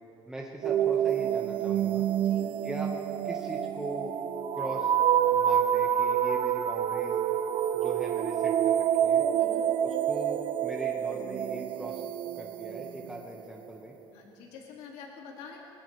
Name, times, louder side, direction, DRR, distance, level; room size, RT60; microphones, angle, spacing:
voice 1, 0.3-2.0 2.6-2.9 3.2-4.1 4.5-4.9 5.3-7.2 7.7-9.2 9.8-12.0 12.3-13.9, right 1 dB, 5° right, -2 dB, 1.5 m, -40 dB
sound 1, 0.6-13.4, right 10 dB, 60° right, 0.6 m, -27 dB
voice 2, 9.3-9.6 14.1-15.6, left 6 dB, 90° left, -1 dB, 2.4 m, -46 dB
22.0 x 19.0 x 3.4 m, 2.9 s
cardioid pair, 115°, 11 cm